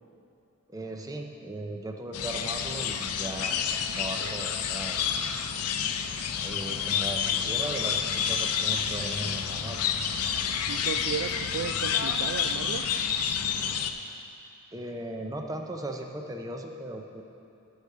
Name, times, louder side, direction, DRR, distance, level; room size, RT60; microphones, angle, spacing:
voice 1, 0.7-3.6 3.9-5.0 6.4-9.8 14.7-17.2, right 1 dB, 15° right, 3 dB, 0.6 m, -37 dB
sound 1, 2.1-13.9, left 7 dB, 80° left, 0.5 m, -29 dB
voice 2, 10.7-12.9, right 7 dB, 65° right, 10 dB, 0.3 m, -34 dB
8.2 x 6.4 x 6.7 m, 2.7 s
head